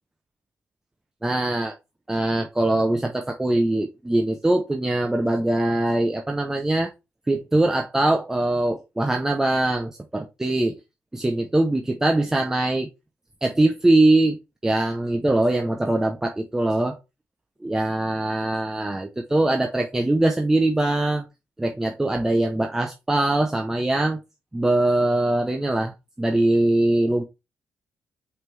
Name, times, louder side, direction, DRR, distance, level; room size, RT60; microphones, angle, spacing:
voice 1, 1.2-1.7 2.1-6.9 7.3-10.8 11.1-12.9 13.4-14.4 14.6-17.0 17.6-21.3 21.6-24.2 24.5-27.2, right 2 dB, 10° right, 3 dB, 0.7 m, -22 dB
5.6 x 3.8 x 4.6 m, 0.25 s
cardioid pair, 145°, 5 cm